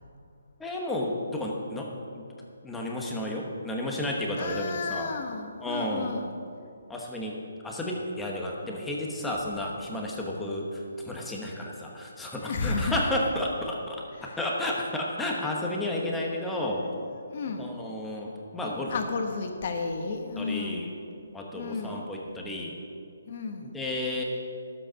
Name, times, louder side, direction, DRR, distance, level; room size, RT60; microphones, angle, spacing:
voice 1, 0.6-2.3 2.6-5.1 5.6-6.1 6.9-16.9 17.6-19.0 20.4-20.9 21.3-22.8 23.6-24.2, left 1 dB, 5° left, -2 dB, 1.1 m, -32 dB
voice 2, 4.4-6.3 12.3-13.0 14.2-14.4 16.0-16.2 16.7-16.9 17.2-17.9 18.9-20.9 21.5-22.1 23.3-23.7, left 4 dB, 40° left, 4 dB, 1.3 m, -33 dB
12.0 x 7.8 x 6.2 m, 2.4 s
hypercardioid pair, 165°, 0 cm